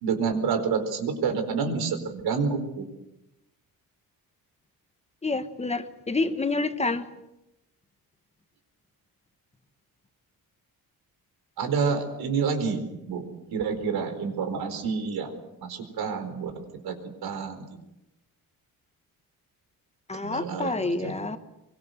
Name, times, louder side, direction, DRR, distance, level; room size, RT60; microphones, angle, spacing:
voice 1, 0.0-2.8 11.6-13.3 13.5-16.5 16.8-17.0 17.2-17.7 20.2-21.4, right 5 dB, 90° right, 8 dB, 4.6 m, -28 dB
voice 2, 5.2-7.0 20.1-21.4, left 3 dB, 20° left, 10 dB, 1.3 m, -28 dB
24.0 x 24.0 x 8.0 m, 0.89 s
cardioid pair, 165°, 36 cm